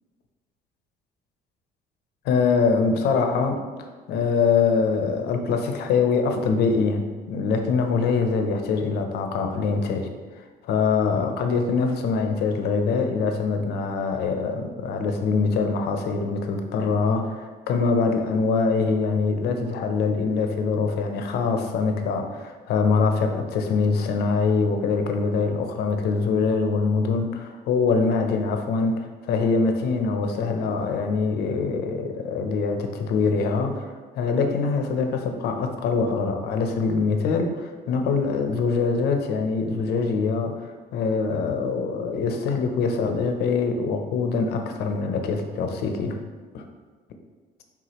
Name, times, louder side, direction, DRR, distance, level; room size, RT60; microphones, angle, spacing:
voice 1, 2.2-3.6 4.1-10.1 10.6-40.5 40.9-46.2 46.5-46.6, left 4 dB, 75° left, 5 dB, 0.6 m, -24 dB
4.8 x 3.5 x 2.9 m, 1.4 s
cardioid pair, 110°, 17 cm